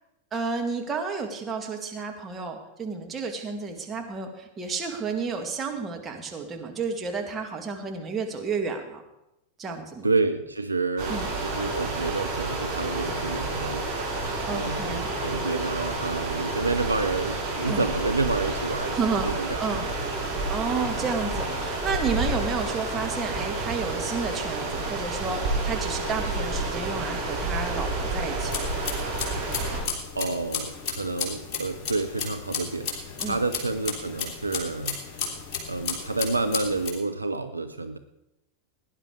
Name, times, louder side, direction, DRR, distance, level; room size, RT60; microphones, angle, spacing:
voice 1, 0.3-9.0 9.6-10.1 11.1-11.3 14.4-15.1 17.6-17.9 18.9-19.3 19.6-19.9 20.5-28.6 33.2-33.4, right 4 dB, 20° right, 2 dB, 2.2 m, -31 dB
voice 2, 10.0-14.1 14.5-19.0 19.2-19.6 19.9-20.0 20.8-20.9 30.1-33.0 33.3-35.0 35.7-38.0, right 3 dB, 80° right, 8 dB, 0.7 m, -29 dB
sound 1, 11.0-29.8, right 2 dB, 40° right, 6.2 m, -30 dB
sound 2, 28.4-36.9, left 5 dB, 35° left, 3.3 m, -34 dB
17.0 x 10.5 x 4.8 m, 0.89 s
figure-of-eight pair, 90°, 0 cm